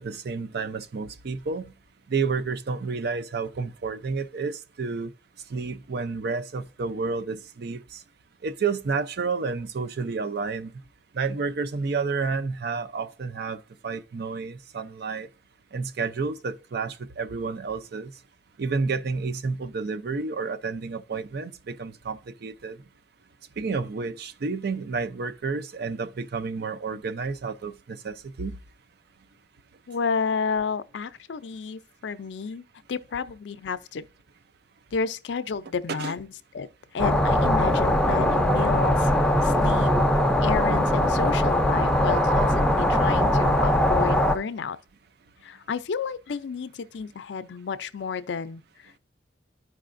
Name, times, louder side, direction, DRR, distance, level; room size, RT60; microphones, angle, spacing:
voice 1, 0.0-1.7 2.1-5.1 5.5-8.0 8.4-10.7 11.1-15.3 15.7-18.1 18.6-22.8 23.6-28.6 35.9-36.1 43.4-43.5, right 4 dB, 60° right, 0.5 m, -30 dB
voice 2, 29.9-34.1 34.9-36.7 36.9-39.1 39.4-39.9 40.4-44.8 45.4-49.0, left 5 dB, 70° left, 0.4 m, -31 dB
sound 1, 37.0-44.4, left 1 dB, 5° left, 0.5 m, -21 dB
12.5 x 4.8 x 2.5 m
head